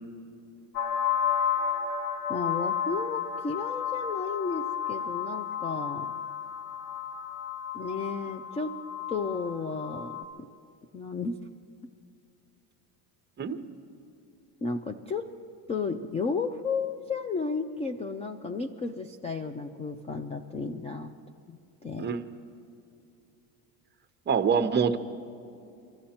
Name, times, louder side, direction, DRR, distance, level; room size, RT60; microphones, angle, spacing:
sound 1, 0.7-10.2, left 8 dB, 80° left, 1.6 m, -32 dB
voice 1, 2.3-6.1 7.7-8.8 9.1-10.5 10.9-11.4 14.6-15.2 15.7-21.2 21.5-22.1, left 4 dB, 15° left, 8 dB, 0.3 m, -33 dB
voice 2, 24.3-25.0, right 6 dB, 25° right, 8 dB, 0.8 m, -25 dB
23.5 x 14.0 x 4.3 m, 2.7 s
cardioid pair, 135°, 42 cm